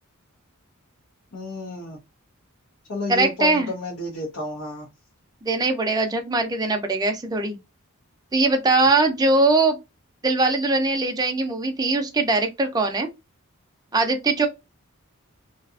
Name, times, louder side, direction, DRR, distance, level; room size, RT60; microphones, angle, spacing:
voice 1, 1.3-2.0 2.9-4.9, left 2 dB, 80° left, 0.9 m, -31 dB
voice 2, 3.1-3.7 5.4-7.6 8.3-9.8 10.2-13.1 13.9-14.5, right 3 dB, 15° right, 0.4 m, -21 dB
2.7 x 2.4 x 2.4 m
head